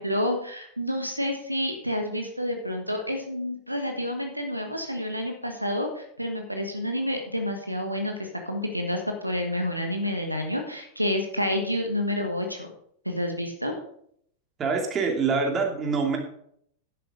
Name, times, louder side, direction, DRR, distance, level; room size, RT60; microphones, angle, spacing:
voice 1, 0.0-12.7 13.0-13.7, left 1 dB, 90° right, 5 dB, 1.5 m, -29 dB
voice 2, 14.6-16.2, right 4 dB, 25° right, 2 dB, 2.6 m, -25 dB
10.5 x 8.4 x 5.0 m, 0.67 s
figure-of-eight pair, 90°, 0 cm